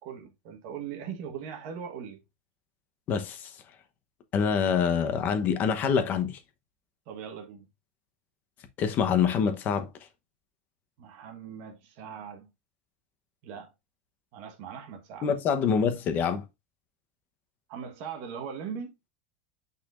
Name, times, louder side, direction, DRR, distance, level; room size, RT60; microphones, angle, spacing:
voice 1, 0.0-2.2 7.1-7.6 11.0-12.5 13.4-13.7 14.3-15.3 17.7-18.9, right 7 dB, 50° right, 1.3 m, -40 dB
voice 2, 3.1-3.5 4.3-6.4 8.8-9.9 15.2-16.4, left 7 dB, 30° left, 0.9 m, -25 dB
8.8 x 4.2 x 2.5 m
supercardioid pair, 160°, 6 cm